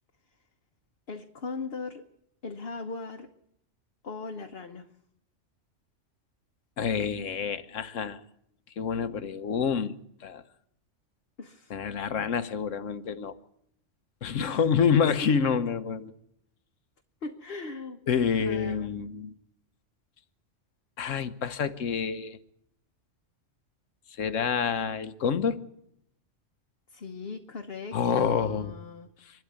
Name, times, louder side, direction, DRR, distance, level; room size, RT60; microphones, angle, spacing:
voice 1, 1.1-2.1 2.4-3.3 4.0-4.9 11.4-11.7 14.4-14.6 15.0-15.4 17.2-18.0 18.4-18.9 26.9-29.3, left 3 dB, 50° left, 1.2 m, -38 dB
voice 2, 6.8-8.2 8.8-10.4 11.7-13.4 14.2-16.1 18.1-19.3 21.0-22.4 24.2-25.6 27.9-28.7, left 6 dB, 85° left, 1.4 m, -27 dB
24.5 x 12.5 x 9.5 m
omnidirectional pair, 1.3 m